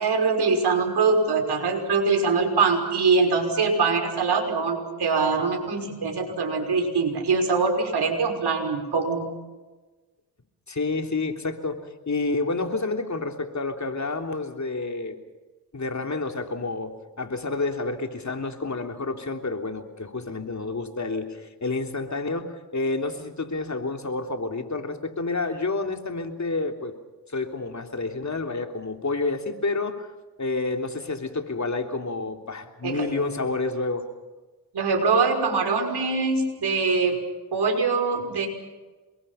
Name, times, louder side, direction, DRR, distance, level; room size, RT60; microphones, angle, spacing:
voice 1, 0.0-9.3 32.8-33.1 34.7-37.2 37.5-38.5, right 4 dB, 75° right, 3 dB, 5.7 m, -23 dB
voice 2, 10.7-15.2 15.7-26.9 27.3-30.1 30.4-34.1, left 3 dB, 45° left, 5 dB, 3.4 m, -29 dB
28.0 x 22.5 x 5.8 m, 1.2 s
cardioid pair, 60°, 40 cm